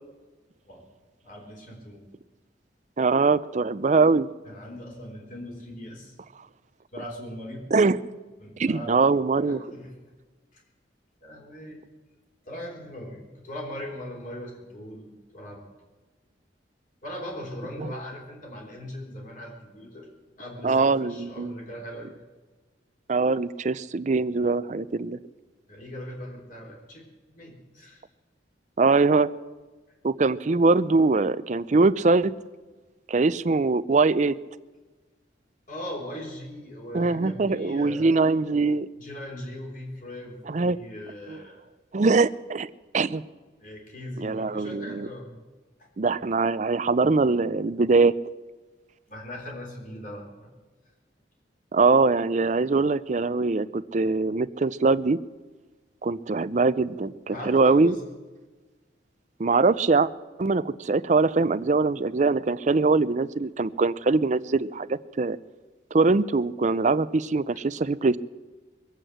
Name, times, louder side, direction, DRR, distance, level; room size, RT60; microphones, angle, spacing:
voice 1, 1.2-2.1 4.5-6.1 6.9-7.7 8.4-9.0 9.4-9.9 10.5-10.6 11.2-11.8 12.4-15.7 17.0-20.1 20.4-22.1 25.7-27.0 27.3-28.0 35.7-38.2 39.0-41.6 43.6-45.3 49.1-50.5 57.3-58.0 62.7-62.8, equal, 45° left, -1 dB, 3.7 m, -39 dB
voice 2, 3.0-4.3 7.7-8.0 8.6-9.6 17.8-17.9 20.6-21.5 23.1-25.2 28.8-29.3 30.0-32.3 33.1-34.4 36.9-38.9 40.5-40.8 41.3-41.4 41.9-42.7 42.9-43.2 44.2-45.1 46.0-48.1 51.7-55.2 56.0-57.9 59.4-60.1 60.4-65.4 65.9-68.2, right 3 dB, 40° right, 15 dB, 0.5 m, -22 dB
22.0 x 8.2 x 7.8 m, 1.3 s
head